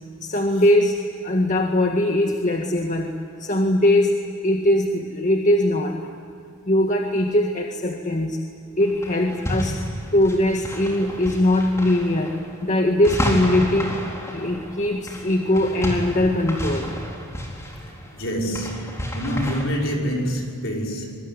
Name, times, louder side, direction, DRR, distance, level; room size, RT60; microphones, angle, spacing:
voice 1, 0.2-4.2 4.4-6.0 6.7-8.4 8.8-9.8 10.1-14.0 14.3-16.9, left 1 dB, 35° left, 2 dB, 1.8 m, -21 dB
sound 1, 8.8-19.6, equal, 15° left, 4.3 m, -31 dB
voice 2, 18.1-21.2, equal, 65° left, 0 dB, 5.7 m, -26 dB
26.0 x 23.5 x 9.6 m, 2.6 s
head